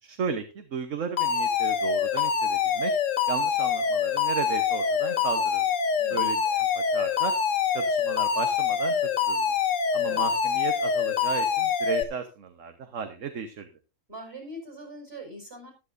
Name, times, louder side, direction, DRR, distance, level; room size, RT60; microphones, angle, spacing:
voice 1, 0.0-2.9 3.3-5.7 6.1-6.6 6.9-7.3 7.7-9.4 9.9-13.7, right 6 dB, 60° right, 7 dB, 1.4 m, -34 dB
Alarm, 1.2-12.0, left 6 dB, 60° left, 1.3 m, -25 dB
voice 2, 6.0-6.4 10.1-10.3 14.1-15.7, equal, 40° right, 1 dB, 5.4 m, -42 dB
13.5 x 12.5 x 2.6 m, 0.30 s
omnidirectional pair, 1.5 m